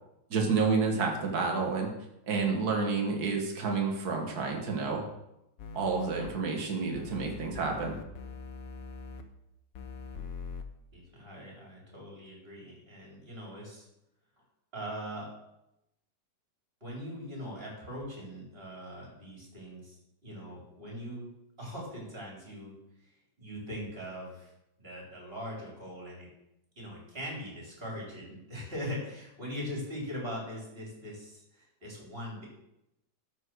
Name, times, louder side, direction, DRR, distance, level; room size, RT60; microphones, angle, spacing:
voice 1, 0.3-1.9 2.3-5.0 5.7-8.0, right 4 dB, 60° right, 1 dB, 2.1 m, -29 dB
sound 1, 5.6-6.3 6.9-9.2 9.7-10.6, left 4 dB, 55° left, 1.2 m, -42 dB
voice 2, 10.9-13.9 14.7-15.3 16.8-20.0 20.2-21.3 21.6-22.7 23.0-24.5 24.8-26.3 26.8-32.5, equal, 30° right, -3 dB, 4.2 m, -41 dB
12.5 x 5.5 x 6.3 m, 0.86 s
omnidirectional pair, 2.0 m